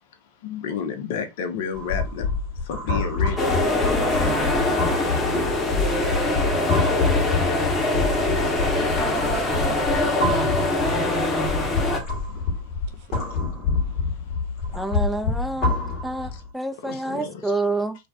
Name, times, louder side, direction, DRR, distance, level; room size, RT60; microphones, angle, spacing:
voice 1, 0.4-2.3 2.7-3.4 16.9-17.3, left 7 dB, 60° left, 0.6 m, -30 dB
sound 1, 1.7-16.5, left 4 dB, 45° left, 1.2 m, -27 dB
voice 2, 2.9-5.6 9.3-11.1 13.0-13.2, right 10 dB, 60° right, 0.5 m, -42 dB
sound 2, 3.4-12.0, left 2 dB, 20° left, 0.9 m, -23 dB
voice 3, 14.7-15.7 16.0-18.0, right 2 dB, 5° right, 0.4 m, -28 dB
2.5 x 2.1 x 2.4 m
hypercardioid pair, 85°, 0 cm